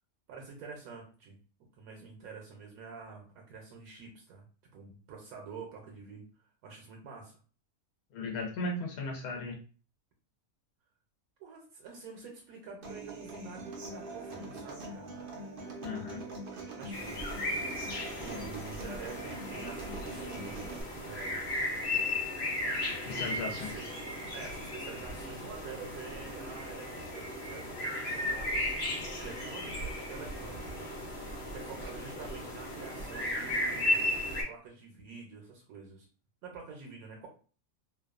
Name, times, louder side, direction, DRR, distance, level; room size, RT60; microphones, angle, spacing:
voice 1, 0.3-1.3 1.7-4.5 4.7-6.3 6.6-7.4 11.4-15.2 16.8-17.3 18.2-20.7 21.0-21.5 23.0-23.9 24.3-28.6 29.2-30.8 31.5-34.0 34.5-36.1 36.4-37.3, right 4 dB, 75° right, 1 dB, 1.1 m, -47 dB
voice 2, 8.1-9.6 15.8-16.2 23.0-23.7, left 2 dB, 85° left, 0 dB, 1.1 m, -36 dB
Human voice / Acoustic guitar, 12.8-20.8, right 2 dB, 60° right, 0.6 m, -43 dB
sound 1, 16.9-34.4, left 1 dB, 55° left, 0.9 m, -35 dB
2.7 x 2.2 x 2.3 m, 0.38 s
omnidirectional pair, 1.5 m